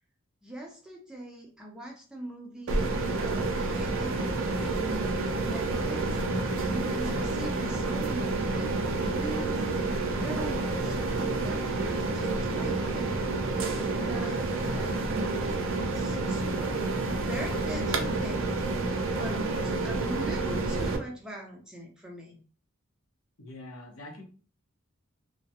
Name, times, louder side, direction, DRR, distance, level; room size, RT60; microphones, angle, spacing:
voice 1, 0.4-2.9 3.2-4.2 4.7-6.2 6.7-9.9 10.2-13.1 13.6-14.4 14.7-16.9 17.2-18.5 19.2-22.4, right 1 dB, 5° right, -2 dB, 0.4 m, -41 dB
sound 1, 2.7-21.0, right 3 dB, 65° right, 0.4 m, -29 dB
voice 2, 23.4-24.2, left 1 dB, 80° left, 1 dB, 0.7 m, -44 dB
2.3 x 2.0 x 2.7 m, 0.39 s
head